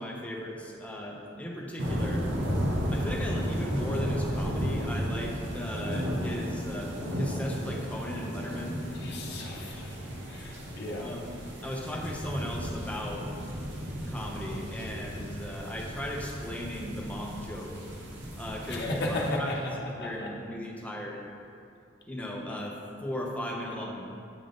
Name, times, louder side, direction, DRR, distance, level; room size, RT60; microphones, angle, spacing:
voice 1, 0.0-2.3 2.9-8.8 11.0-11.4 11.6-13.3 14.0-17.8 18.4-21.2 22.1-24.0, equal, 5° left, -2 dB, 0.7 m, -37 dB
sound 1, 1.8-19.3, equal, 65° right, 0.9 m, -34 dB
voice 2, 9.0-9.9 10.3-11.1 18.7-19.5 20.0-20.1, left 1 dB, 55° left, -3 dB, 0.7 m, -33 dB
8.9 x 3.6 x 3.8 m, 2.5 s
head